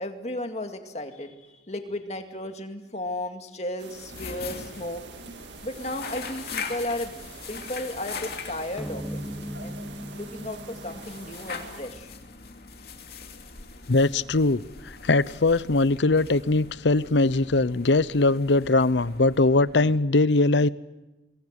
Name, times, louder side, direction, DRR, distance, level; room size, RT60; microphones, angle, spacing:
voice 1, 0.0-1.3 1.7-5.0 5.6-9.2 9.6-9.8 10.1-12.1, left 1 dB, 40° left, 2.3 m, -34 dB
sound 1, 3.8-11.8, right 4 dB, 85° right, 2.0 m, -46 dB
sound 2, 3.9-20.1, left 4 dB, 60° left, 2.7 m, -41 dB
sound 3, 8.8-13.4, equal, 5° left, 1.1 m, -39 dB
voice 2, 13.9-14.6 15.0-20.7, left 2 dB, 85° left, 0.8 m, -21 dB
24.5 x 22.0 x 8.2 m
head